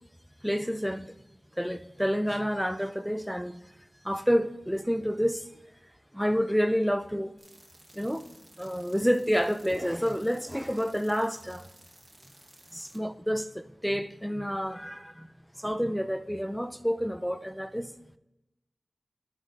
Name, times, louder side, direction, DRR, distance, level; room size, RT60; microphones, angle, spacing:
voice 1, 0.4-1.1 1.5-3.6 4.0-5.5 6.1-7.3 7.9-8.3 8.6-11.7 12.7-15.3 15.6-17.9, equal, ahead, 0.4 m, -29 dB
sound 1, 7.4-13.0, right 1 dB, 25° right, 1.1 m, -56 dB
13.0 x 5.4 x 2.4 m
cardioid pair, 50°, 0 cm